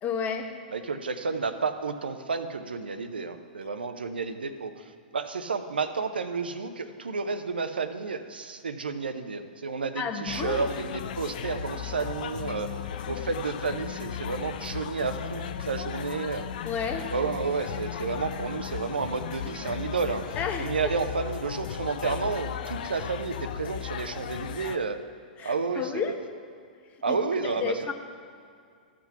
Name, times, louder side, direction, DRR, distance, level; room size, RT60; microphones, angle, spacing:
voice 1, 0.0-0.5 10.0-10.7 16.6-17.1 20.4-20.7 25.4-26.2 27.1-27.2 27.4-27.9, left 6 dB, 30° left, 5 dB, 1.0 m, -31 dB
voice 2, 0.7-4.8 5.1-12.7 13.1-16.5 17.1-20.2 20.6-25.0 25.4-26.1 27.0-27.9, right 4 dB, 80° right, 9 dB, 0.7 m, -31 dB
sound 1, 10.3-24.8, left 9 dB, 60° left, 0.5 m, -36 dB
14.0 x 6.0 x 5.8 m, 2.2 s
figure-of-eight pair, 105°, 5 cm